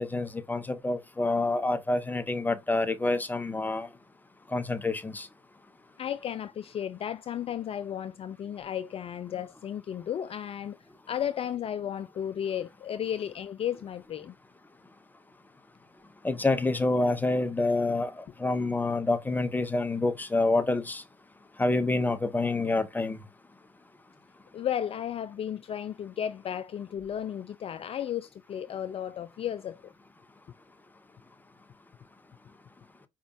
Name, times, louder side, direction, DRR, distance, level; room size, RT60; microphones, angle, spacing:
voice 1, 0.0-3.9 4.5-5.3 16.2-21.0 21.6-23.2, left 2 dB, 10° left, 1.0 m, -27 dB
voice 2, 6.0-10.8 11.1-14.3 24.5-29.9, left 9 dB, 40° left, 0.4 m, -34 dB
5.0 x 3.6 x 2.6 m
supercardioid pair, 70°, 14 cm